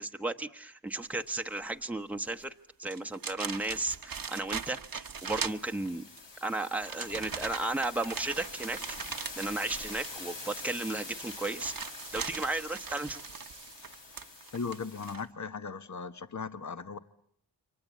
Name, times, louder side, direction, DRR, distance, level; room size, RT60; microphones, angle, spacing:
voice 1, 0.0-2.5 2.8-6.0 6.4-8.8 9.3-11.7 12.1-13.2, right 2 dB, 5° right, 6 dB, 1.1 m, -34 dB
sound 1, 2.3-2.4 2.8-6.2 6.8-15.3, right 6 dB, 50° right, 1.1 m, -41 dB
sound 2, 5.1-15.1, left 4 dB, 70° left, 2.7 m, -46 dB
Sink (filling or washing), 8.3-13.7, right 6 dB, 90° right, 1.4 m, -51 dB
voice 2, 14.5-17.0, left 5 dB, 40° left, 11 dB, 1.2 m, -37 dB
29.0 x 24.5 x 8.4 m, 0.69 s
cardioid pair, 60°, 45 cm